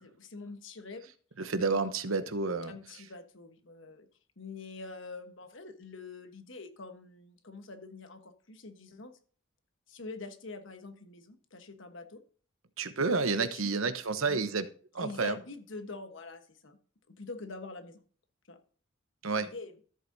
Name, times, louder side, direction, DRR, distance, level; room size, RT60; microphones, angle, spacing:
voice 1, 0.0-1.1 2.7-4.1 4.4-9.1 9.9-12.2 13.4-13.9 14.3-14.4 15.0-16.8 17.1-18.0 18.5-18.6 19.4-19.7, left 3 dB, 65° left, 8 dB, 1.2 m, -45 dB
voice 2, 1.4-2.7 12.8-14.6 14.9-15.4 19.2-19.5, right 4 dB, 80° right, 10 dB, 1.0 m, -30 dB
14.0 x 8.0 x 2.7 m, 0.42 s
head